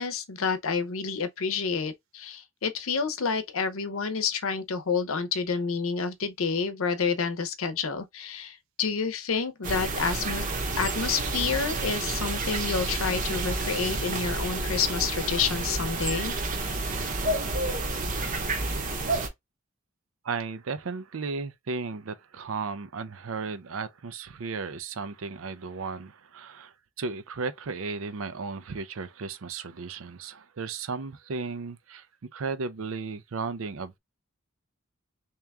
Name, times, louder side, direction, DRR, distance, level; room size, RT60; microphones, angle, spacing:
voice 1, 0.0-10.4 10.8-16.3, left 5 dB, 85° left, 0.7 m, -29 dB
sound 1, 9.6-19.3, right 2 dB, 40° right, 0.9 m, -30 dB
voice 2, 20.2-32.1 32.3-34.0, right 4 dB, 75° right, 0.5 m, -35 dB
3.5 x 3.0 x 3.4 m
head